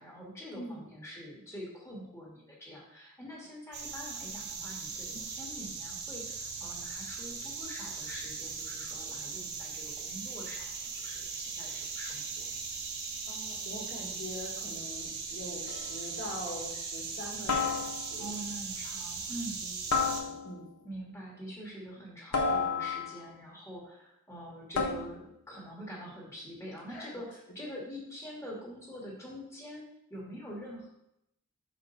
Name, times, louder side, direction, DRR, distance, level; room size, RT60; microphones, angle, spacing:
voice 1, 0.0-12.5 18.2-19.6 20.8-29.8 30.1-30.9, equal, 15° left, -4 dB, 2.0 m, -45 dB
sound 1, 3.7-20.2, right 5 dB, 50° right, 1.1 m, -39 dB
voice 2, 13.3-18.3 19.6-20.7 26.9-27.1, left 1 dB, 50° left, -6 dB, 1.9 m, -43 dB
sound 2, 15.7-16.0 17.5-18.3 19.9-20.7 22.3-23.3 24.7-25.3, left 4 dB, 80° left, 1.1 m, -31 dB
6.5 x 5.1 x 4.1 m, 0.81 s
head